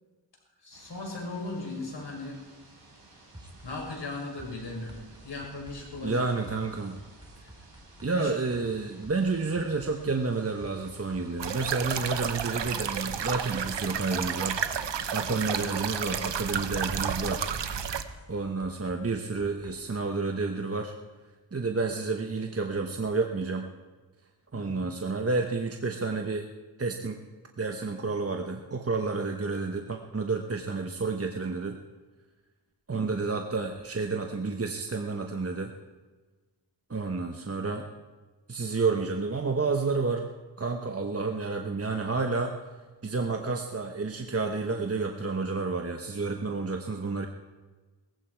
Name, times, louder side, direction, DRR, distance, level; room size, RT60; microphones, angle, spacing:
voice 1, 0.6-2.4 3.6-5.0 5.2-6.3 8.1-8.3 24.5-24.8, left 2 dB, 75° left, -1 dB, 6.0 m, -37 dB
sound 1, 0.7-16.4, right 2 dB, 55° right, 5.5 m, -55 dB
sound 2, 3.3-19.8, equal, 10° right, 3.4 m, -51 dB
voice 2, 6.0-7.0 8.0-14.6 14.9-17.4 18.3-20.9 21.5-23.7 24.5-26.5 26.8-27.2 27.6-31.8 32.9-35.7 36.9-37.8 38.5-40.3 40.6-42.5 43.0-47.3, right 4 dB, 35° right, 3 dB, 1.2 m, -30 dB
sound 3, 11.4-18.0, right 7 dB, 80° right, 1.0 m, -31 dB
19.0 x 15.5 x 4.7 m, 1.3 s
wide cardioid pair, 70°, 42 cm